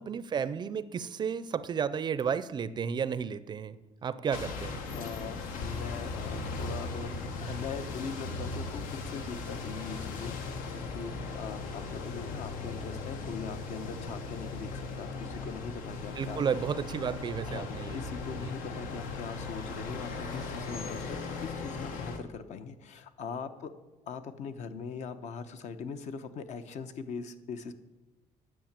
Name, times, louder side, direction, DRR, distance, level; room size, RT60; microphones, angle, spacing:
voice 1, 0.0-3.8 4.0-4.8 16.2-18.0 18.4-18.5, right 7 dB, 35° right, 15 dB, 0.5 m, -32 dB
sound 1, 4.3-22.2, left 3 dB, 85° left, 1.5 m, -38 dB
voice 2, 4.9-16.4 17.5-23.7 24.1-27.7, left 5 dB, 60° left, 10 dB, 0.9 m, -41 dB
10.5 x 7.4 x 7.4 m, 1.2 s
cardioid pair, 135°, 14 cm